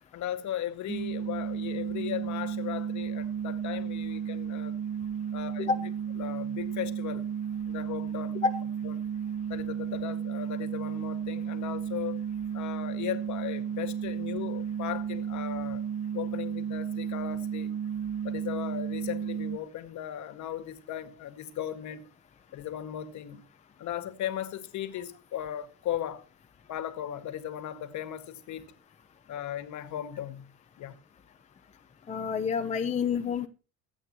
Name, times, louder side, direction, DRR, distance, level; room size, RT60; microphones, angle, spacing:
voice 1, 0.1-4.8 5.3-5.9 6.2-7.3 7.7-8.4 8.8-8.9 9.5-12.2 12.5-15.8 16.1-17.7 18.2-22.0 22.5-23.4 23.8-26.3 26.7-28.7 29.3-30.5 30.8-31.0, left 11 dB, 60° left, 1.9 m, -37 dB
sound 1, 0.9-19.6, right 8 dB, 65° right, 1.6 m, -33 dB
voice 2, 32.1-33.5, left 5 dB, 20° left, 0.8 m, -28 dB
23.0 x 8.8 x 3.0 m
cardioid pair, 170°, 33 cm